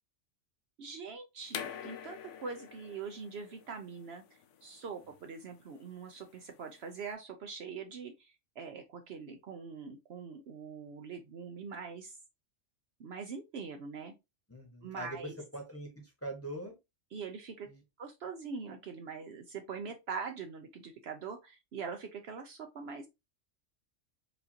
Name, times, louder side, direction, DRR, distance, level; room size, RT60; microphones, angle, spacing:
voice 1, 0.8-4.2 4.6-12.2 13.0-14.1 14.8-15.3 17.1-17.7 18.0-23.1, right 5 dB, 65° right, 0.8 m, -43 dB
sound 1, 1.5-7.1, left 8 dB, 75° left, 0.9 m, -46 dB
voice 2, 14.5-16.7 17.6-17.8, right 1 dB, 10° left, 1.0 m, -43 dB
4.8 x 2.5 x 2.8 m
omnidirectional pair, 1.3 m